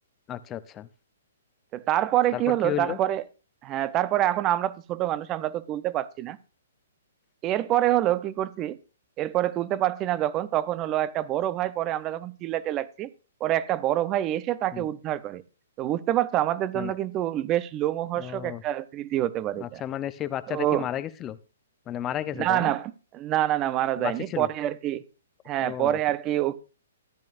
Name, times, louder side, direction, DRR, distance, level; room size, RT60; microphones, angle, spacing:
voice 1, 0.3-0.9 2.3-3.0 14.7-14.9 16.7-16.9 18.2-18.6 19.6-21.4 21.9-22.7 24.0-24.5 25.6-26.0, left 11 dB, 20° left, 0.6 m, -33 dB
voice 2, 1.7-3.2 3.6-6.4 7.4-8.8 9.2-13.1 13.4-15.4 15.8-19.8 20.5-20.8 22.4-25.0 25.5-26.6, right 13 dB, 25° right, 0.6 m, -26 dB
14.0 x 10.5 x 2.6 m
hypercardioid pair, 145°, 0 cm